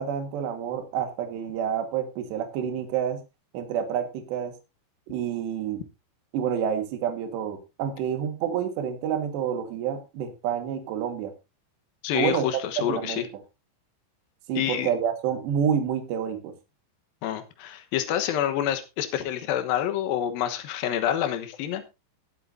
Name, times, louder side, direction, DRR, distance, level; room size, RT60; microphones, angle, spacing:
voice 1, 0.0-3.2 3.5-4.6 5.1-5.8 6.3-11.3 12.1-12.5 12.8-13.3 14.5-16.5, right 8 dB, 70° right, 6 dB, 3.6 m, -28 dB
voice 2, 12.0-13.2 14.6-14.9 17.2-21.8, left 11 dB, 70° left, 8 dB, 2.5 m, -27 dB
21.5 x 7.8 x 2.7 m, 0.25 s
omnidirectional pair, 5.4 m